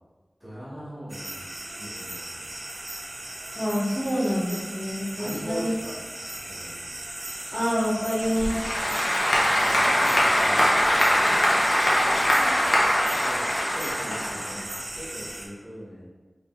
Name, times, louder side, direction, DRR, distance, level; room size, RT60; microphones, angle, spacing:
voice 1, 0.4-1.4 1.8-2.3 5.2-6.0 6.3-6.8 9.6-11.4 12.0-16.0, equal, ahead, -8 dB, 1.2 m, -40 dB
sound 1, 1.1-15.5, right 1 dB, 60° right, 0.6 m, -37 dB
voice 2, 3.5-5.7 7.5-8.6, equal, 30° left, -9 dB, 1.5 m, -27 dB
Applause / Crowd, 8.2-14.8, equal, 85° left, 0.8 m, -22 dB
4.9 x 3.3 x 2.4 m, 1.3 s
wide cardioid pair, 65°, 0 cm